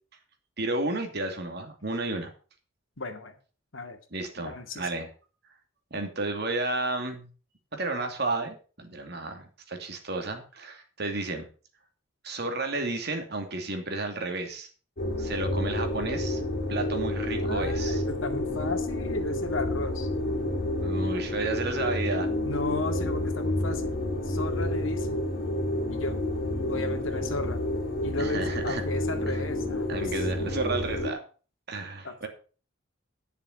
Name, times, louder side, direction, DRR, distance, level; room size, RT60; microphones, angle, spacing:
voice 1, 0.6-2.3 4.1-5.1 5.9-7.3 7.7-11.5 12.2-14.7 15.2-16.4 16.7-18.0 20.8-22.3 28.2-28.8 29.9-31.2 31.7-32.3, right 2 dB, 55° right, 5 dB, 2.6 m, -32 dB
voice 2, 3.0-3.4 3.7-4.0 4.4-4.9 17.4-20.1 22.4-24.0 24.2-25.3 25.9-26.2 26.7-27.6 28.0-30.3 32.0-32.3, left 2 dB, 75° left, 6 dB, 2.1 m, -35 dB
sound 1, 15.0-31.1, left 1 dB, 50° left, 3.2 m, -29 dB
11.0 x 6.9 x 6.5 m, 0.37 s
head